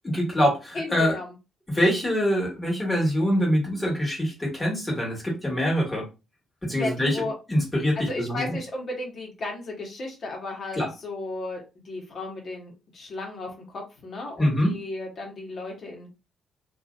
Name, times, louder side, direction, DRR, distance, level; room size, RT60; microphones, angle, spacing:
voice 1, 0.0-1.2 1.7-6.1 6.6-8.5 10.8-10.9 14.4-14.7, equal, 15° left, -2 dB, 1.7 m, -24 dB
voice 2, 0.7-1.3 1.7-2.0 6.7-7.3 7.9-16.1, left 2 dB, 50° left, 0 dB, 1.3 m, -35 dB
2.8 x 2.8 x 2.5 m, 0.28 s
cardioid pair, 90°, 0 cm